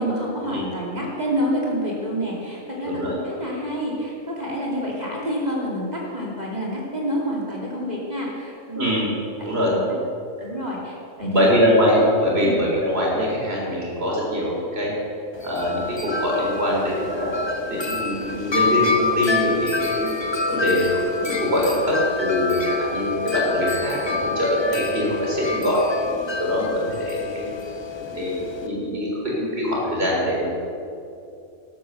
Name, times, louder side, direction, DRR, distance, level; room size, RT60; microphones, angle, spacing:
voice 1, 0.0-8.8 9.4-10.0 10.4-11.5 12.4-12.6, equal, 30° right, -4 dB, 2.7 m, -28 dB
voice 2, 2.8-3.1 8.8-9.1 9.4-9.7 11.2-14.9 15.4-20.1 20.5-27.5 28.1-30.5, equal, 50° right, -3 dB, 4.0 m, -23 dB
Wind chime, 15.3-28.7, left 4 dB, 20° left, 1.0 m, -27 dB
13.0 x 12.5 x 6.7 m, 2.7 s
omnidirectional pair, 1.3 m